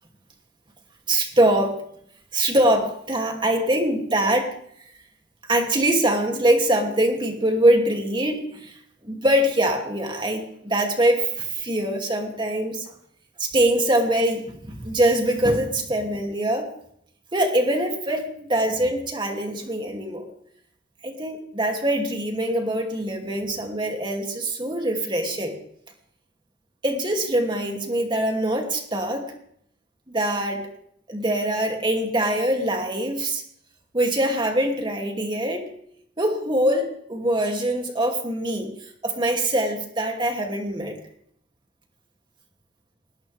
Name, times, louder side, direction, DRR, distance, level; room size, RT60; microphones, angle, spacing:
voice 1, 1.1-1.7 2.3-4.5 5.5-8.7 9.0-12.9 13.4-16.7 17.3-20.3 21.0-25.5 26.8-29.2 30.1-30.6 31.1-33.4 33.9-35.7 36.2-38.7 39.0-41.0, right 1 dB, 25° right, 2 dB, 2.8 m, -23 dB
20.0 x 19.0 x 3.6 m, 0.68 s
head